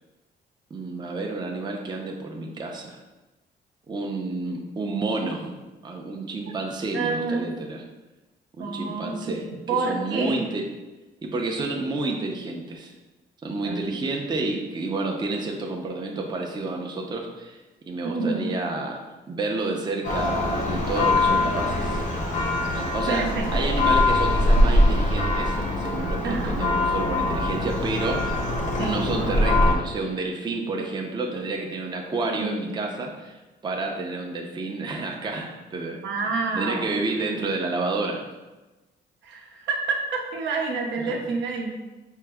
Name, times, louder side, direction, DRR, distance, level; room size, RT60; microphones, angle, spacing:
voice 1, 0.7-3.0 3.9-5.5 5.8-7.8 8.6-9.4 9.7-10.6 11.2-13.0 13.4-17.6 17.9-19.0 19.3-22.0 22.7-28.4 28.7-36.0 36.5-38.3 41.0-41.2, right 3 dB, 25° right, 0 dB, 0.5 m, -30 dB
voice 2, 6.9-7.5 8.6-9.4 9.7-10.4 13.6-13.8 18.0-18.6 23.1-23.5 26.2-26.7 28.8-29.0 32.4-32.5 36.0-37.0 39.2-41.9, right 4 dB, 75° right, 0 dB, 0.6 m, -28 dB
Church bell, 20.0-29.7, left 2 dB, 40° left, 0.7 m, -23 dB
4.5 x 2.0 x 3.4 m, 1.1 s
cardioid pair, 110°, 19 cm